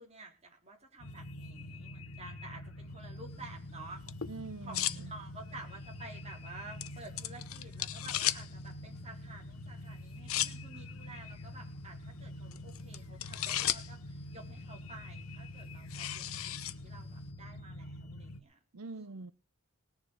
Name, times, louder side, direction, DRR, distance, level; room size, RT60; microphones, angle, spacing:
voice 1, 0.0-4.1 4.6-19.1, right 2 dB, 30° right, 1 dB, 3.8 m, -51 dB
sound 1, 1.0-18.4, left 1 dB, 90° left, 1.2 m, -46 dB
sound 2, 3.3-17.3, left 13 dB, 70° left, 0.7 m, -40 dB
voice 2, 4.3-5.1 18.7-19.3, right 3 dB, 85° right, 13 dB, 0.7 m, -44 dB
19.0 x 7.3 x 6.3 m, 0.33 s
head